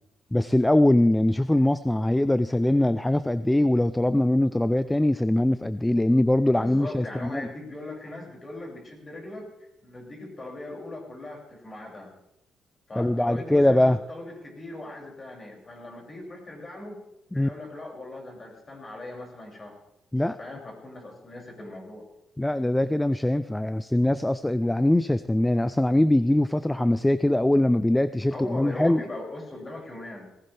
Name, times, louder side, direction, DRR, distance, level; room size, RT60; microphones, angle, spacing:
voice 1, 0.3-7.4 13.0-14.0 17.3-17.5 20.1-20.4 22.4-29.0, left 1 dB, 10° left, 14 dB, 0.5 m, -22 dB
voice 2, 6.6-12.1 12.9-17.0 17.3-19.8 20.4-22.1 28.3-30.3, left 2 dB, 30° left, 0 dB, 6.2 m, -39 dB
18.5 x 17.0 x 3.4 m, 0.87 s
cardioid pair, 90°, 0 cm